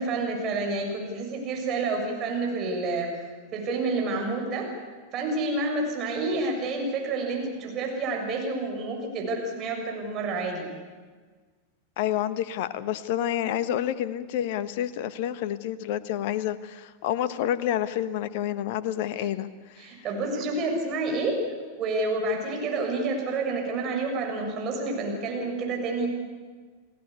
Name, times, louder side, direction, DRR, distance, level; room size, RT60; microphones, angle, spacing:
voice 1, 0.0-3.1 3.5-4.7 5.1-10.7 19.1-19.3 19.8-21.4 21.7-26.1, right 3 dB, 35° right, 1 dB, 6.8 m, -29 dB
voice 2, 12.0-19.9, left 11 dB, 50° left, 14 dB, 1.3 m, -29 dB
30.0 x 18.5 x 8.4 m, 1.5 s
figure-of-eight pair, 90°, 0 cm